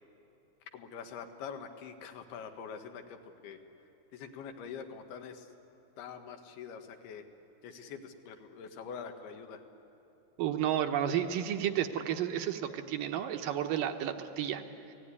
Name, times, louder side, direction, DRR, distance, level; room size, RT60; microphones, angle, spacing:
voice 1, 0.7-3.6 4.1-5.5 6.0-7.2 7.6-9.6, left 6 dB, 85° left, 6 dB, 3.4 m, -45 dB
voice 2, 10.4-14.6, right 10 dB, 70° right, 7 dB, 2.4 m, -32 dB
29.0 x 18.5 x 9.8 m, 2.9 s
omnidirectional pair, 4.4 m